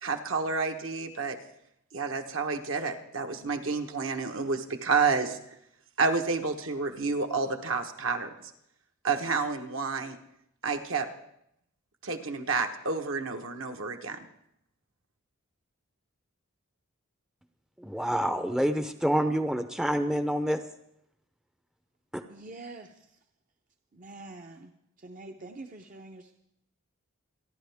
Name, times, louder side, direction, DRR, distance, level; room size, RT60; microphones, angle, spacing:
voice 1, 0.0-1.4 1.9-5.4 6.0-8.3 9.0-10.2 10.6-11.1 12.0-14.2, right 4 dB, 65° right, 5 dB, 1.3 m, -29 dB
voice 2, 17.8-20.6 22.1-22.2, equal, 5° right, 8 dB, 0.6 m, -27 dB
voice 3, 22.3-23.2 23.9-24.7 25.0-26.4, right 2 dB, 40° right, 4 dB, 0.7 m, -45 dB
27.5 x 11.0 x 3.5 m, 0.76 s
head